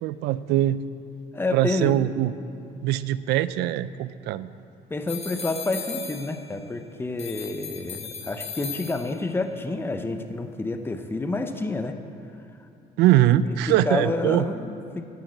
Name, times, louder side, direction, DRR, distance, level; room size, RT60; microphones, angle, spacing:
voice 1, 0.0-0.8 1.5-2.3 2.8-4.5 13.0-14.5, right 13 dB, 85° right, 16 dB, 0.5 m, -22 dB
voice 2, 1.3-2.0 4.9-11.9 13.3-13.4 13.9-15.0, left 2 dB, 15° left, 6 dB, 0.8 m, -29 dB
sound 1, 5.1-6.7 7.2-9.4, left 6 dB, 40° left, 1.3 m, -37 dB
10.5 x 9.3 x 7.9 m, 2.7 s
cardioid pair, 110°, 17 cm